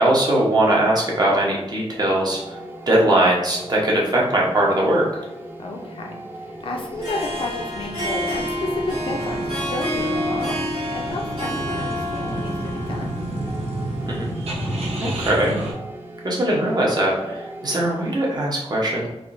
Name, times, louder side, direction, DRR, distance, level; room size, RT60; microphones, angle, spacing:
voice 1, 0.0-2.6 2.9-5.1 14.0-14.3 15.0-15.6 16.2-19.1, right 1 dB, 40° right, -3 dB, 0.9 m, -20 dB
sound 1, 2.0-18.4, right 1 dB, 20° right, 0.4 m, -38 dB
voice 2, 5.6-13.2, left 2 dB, 60° left, 0 dB, 0.5 m, -32 dB
sound 2, 6.9-15.7, right 1 dB, 80° right, 0.8 m, -31 dB
Harp, 7.0-14.2, equal, 60° right, 1.5 m, -29 dB
3.6 x 2.6 x 2.5 m, 0.97 s
wide cardioid pair, 115°, 10 cm